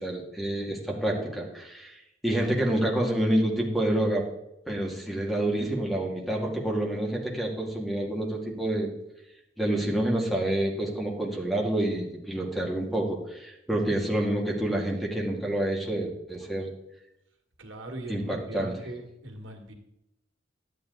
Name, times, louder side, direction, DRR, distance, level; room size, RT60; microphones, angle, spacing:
voice 1, 0.0-2.0 2.2-4.3 4.7-8.9 9.6-16.7 18.1-18.7, right 1 dB, ahead, -1 dB, 2.1 m, -28 dB
voice 2, 17.6-19.7, right 1 dB, 90° right, 4 dB, 1.9 m, -40 dB
11.5 x 9.3 x 3.9 m, 0.85 s
head